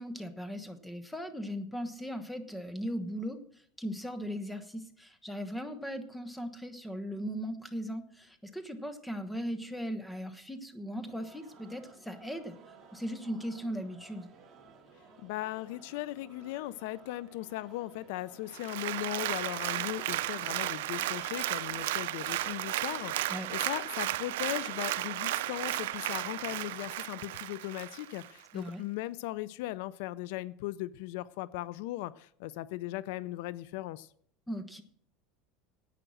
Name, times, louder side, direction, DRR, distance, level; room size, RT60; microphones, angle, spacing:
voice 1, 0.0-3.4 3.8-12.6 12.9-14.3 23.3-23.5 28.5-28.8 34.5-34.8, equal, 5° left, 9 dB, 1.2 m, -38 dB
sound 1, 11.1-26.9, right 4 dB, 30° right, 2.4 m, -56 dB
voice 2, 15.2-34.1, left 16 dB, 70° left, 19 dB, 0.4 m, -38 dB
Applause, 18.5-28.3 28.7-28.8, right 15 dB, 85° right, 0.5 m, -34 dB
10.5 x 8.9 x 6.4 m, 0.64 s
supercardioid pair, 140°, 0 cm